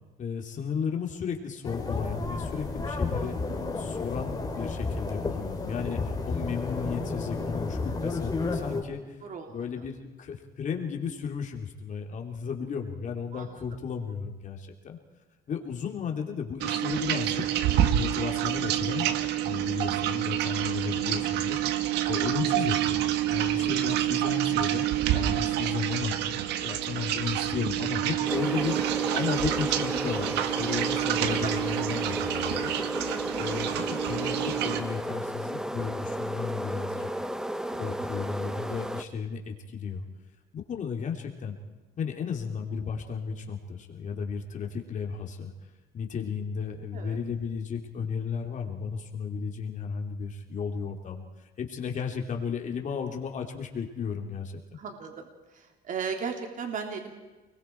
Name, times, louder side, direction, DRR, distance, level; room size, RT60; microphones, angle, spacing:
voice 1, 0.2-3.4 3.7-9.0 9.5-15.0 15.5-17.4 17.9-19.1 19.4-26.2 26.6-28.8 29.1-32.7 33.4-37.2 37.7-40.0 40.5-41.6 42.0-45.5 45.9-51.2 51.6-54.6, left 6 dB, 50° left, 2 dB, 3.0 m, -34 dB
sound 1, 1.6-8.8, left 3 dB, 20° left, 3.6 m, -32 dB
voice 2, 9.2-9.5 13.3-13.6 22.2-22.3 31.1-31.5 46.9-47.2 54.8-55.2 55.5-57.1, right 6 dB, 50° right, 3 dB, 3.2 m, -36 dB
sound 2, 16.6-34.8, right 12 dB, 85° right, 1.5 m, -28 dB
sound 3, 28.3-39.0, right 1 dB, 5° right, 1.0 m, -33 dB
29.5 x 21.0 x 4.6 m, 1.2 s
cardioid pair, 110°, 17 cm